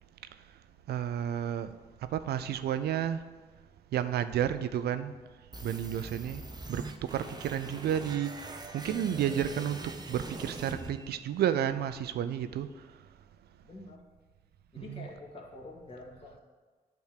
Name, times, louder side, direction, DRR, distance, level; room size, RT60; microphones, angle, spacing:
voice 1, 0.9-1.8 2.1-3.3 3.9-5.1 5.6-6.4 6.7-13.0 14.8-15.1, right 10 dB, 85° right, 0.4 m, -32 dB
sound 1, 5.5-11.5, right 2 dB, 25° right, 0.8 m, -43 dB
voice 2, 5.9-6.5 13.6-14.0 14.7-16.4, left 2 dB, 35° left, 2.1 m, -48 dB
8.2 x 3.5 x 6.5 m
cardioid pair, 70°, 16 cm